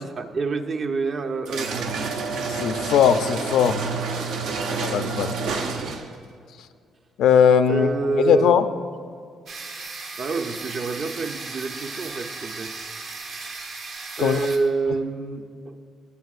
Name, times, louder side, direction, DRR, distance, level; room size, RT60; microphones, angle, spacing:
voice 1, 0.0-1.9 4.3-5.0 5.4-6.0 7.7-8.5 10.2-12.7 14.2-15.7, right 4 dB, 50° right, 6 dB, 0.7 m, -28 dB
sound 1, 1.5-6.2, right 4 dB, 85° right, 0.7 m, -29 dB
voice 2, 2.5-3.8 4.8-5.3 7.2-7.9 8.2-8.6 14.2-14.4, left 8 dB, 80° left, 10 dB, 0.4 m, -19 dB
sound 2, 9.5-14.6, right 3 dB, 70° right, 1.2 m, -36 dB
18.5 x 7.4 x 2.5 m, 2.3 s
cardioid pair, 90°, 0 cm